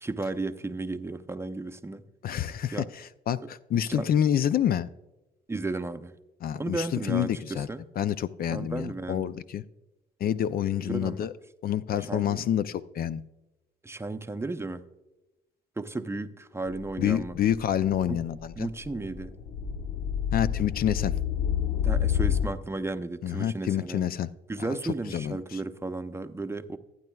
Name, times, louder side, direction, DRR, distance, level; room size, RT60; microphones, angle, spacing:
voice 1, 0.0-2.0 2.7-2.9 3.4-4.2 5.5-6.1 6.5-7.8 8.5-9.3 10.9-11.3 12.1-12.4 13.8-14.8 15.8-17.4 18.1-18.2 18.6-19.3 21.8-24.1 24.5-26.8, right 2 dB, 15° right, 10 dB, 0.6 m, -34 dB
voice 2, 2.2-4.9 6.4-7.7 8.0-9.6 10.2-11.3 11.6-13.2 17.0-18.7 20.3-21.2 23.2-24.3 24.8-25.6, left 10 dB, 55° left, 15 dB, 0.4 m, -28 dB
sound 1, 16.7-22.5, left 9 dB, 75° left, 0.9 m, -29 dB
15.0 x 9.3 x 2.3 m, 1.0 s
cardioid pair, 80°, 18 cm